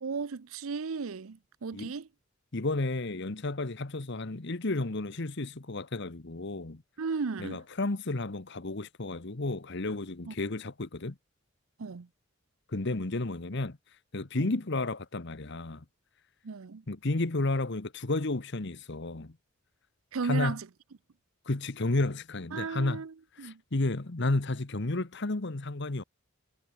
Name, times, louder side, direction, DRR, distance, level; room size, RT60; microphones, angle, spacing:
voice 1, 0.0-2.1 7.0-7.6 10.3-10.4 11.8-12.1 14.4-14.5 16.4-16.8 20.1-20.7 22.5-23.6, right 5 dB, 85° right, 0.6 m, -35 dB
voice 2, 2.5-6.8 7.4-11.2 12.7-13.8 14.1-15.8 16.9-19.4 20.2-20.6 21.5-23.0 23.4-26.0, left 2 dB, 55° left, 1.2 m, -32 dB
head